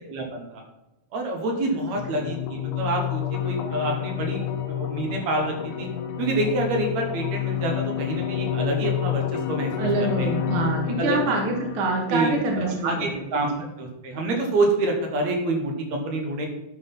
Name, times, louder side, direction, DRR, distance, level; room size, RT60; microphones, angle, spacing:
voice 1, 0.1-0.6 1.1-5.9 6.2-9.2 9.5-9.9 10.2-10.3 11.0-11.2 12.1-13.5 13.8-16.5, right 2 dB, 70° right, 1 dB, 2.5 m, -27 dB
sound 1, 2.0-13.0, left 11 dB, 90° left, 2.2 m, -29 dB
voice 2, 9.8-13.7, right 3 dB, 50° right, 0 dB, 2.0 m, -26 dB
11.0 x 4.0 x 5.5 m, 0.92 s
omnidirectional pair, 3.4 m